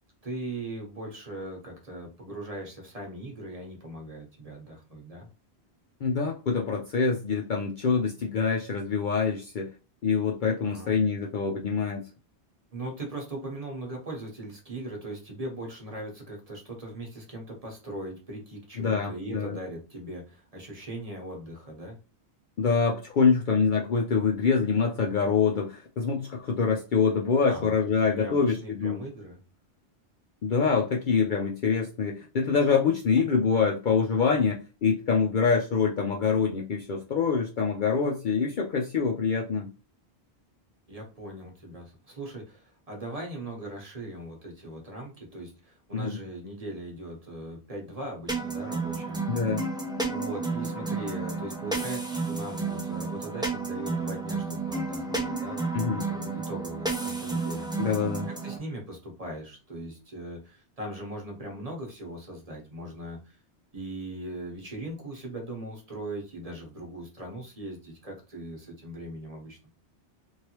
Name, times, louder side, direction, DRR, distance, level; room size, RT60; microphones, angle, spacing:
voice 1, 0.2-5.3 10.6-10.9 12.7-22.0 27.5-27.7 28.1-29.4 40.9-49.2 50.1-57.7 58.3-63.4 63.7-69.7, right 1 dB, 35° right, 0 dB, 1.0 m, -39 dB
voice 2, 6.0-9.7 10.0-12.0 18.8-19.6 22.6-29.0 30.4-39.7 45.9-46.2 49.3-49.6 55.7-56.0 57.8-58.3, left 5 dB, 55° left, -1 dB, 0.6 m, -25 dB
sound 1, 48.3-58.6, right 3 dB, 5° right, 0.4 m, -31 dB
3.2 x 2.6 x 2.9 m, 0.33 s
omnidirectional pair, 1.1 m